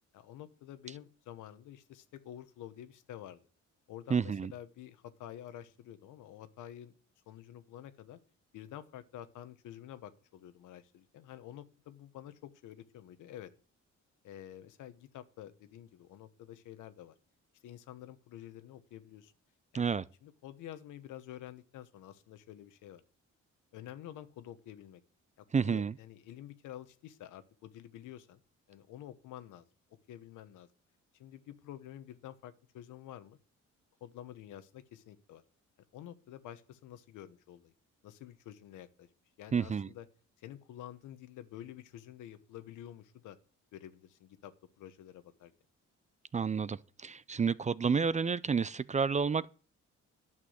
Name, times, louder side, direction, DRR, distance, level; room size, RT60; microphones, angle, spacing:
voice 1, 0.1-3.4 3.9-7.0 7.3-8.2 8.5-13.5 14.2-17.1 17.6-19.3 19.7-19.9 20.2-23.0 23.7-25.0 25.4-28.4 28.7-29.6 30.1-30.7 31.1-33.4 34.0-35.4 35.9-37.7 38.0-39.1 39.4-40.1 40.4-43.4 43.7-45.5, left 11 dB, 85° left, 1.2 m, -49 dB
voice 2, 4.1-4.5 19.7-20.0 25.5-25.9 39.5-39.9 46.3-49.5, right 6 dB, 25° right, 0.4 m, -30 dB
11.0 x 6.2 x 7.9 m
cardioid pair, 90°, 30 cm